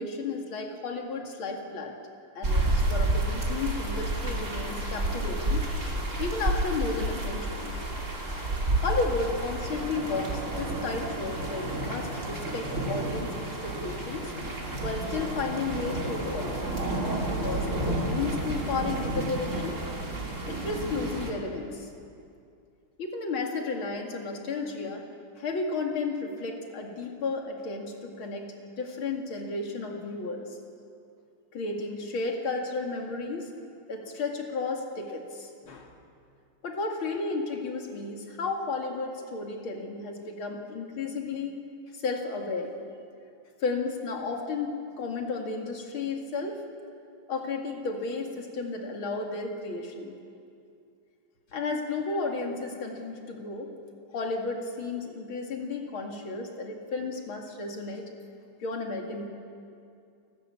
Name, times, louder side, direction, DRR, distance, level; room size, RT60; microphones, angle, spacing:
voice 1, 0.0-1.9 2.3-5.7 6.2-7.8 8.8-14.3 14.8-16.6 17.2-19.8 20.5-21.9 23.0-25.0 25.4-28.5 28.8-30.5 31.5-33.5 33.9-35.9 36.6-41.6 41.9-42.8 43.6-46.6 47.3-50.1 51.5-53.7 54.1-58.1 58.6-59.3, left 3 dB, 75° left, 2 dB, 3.0 m, -33 dB
sound 1, 2.4-21.3, right 1 dB, 35° right, 3.0 m, -30 dB
29.5 x 12.5 x 8.6 m, 2.4 s
omnidirectional pair, 2.3 m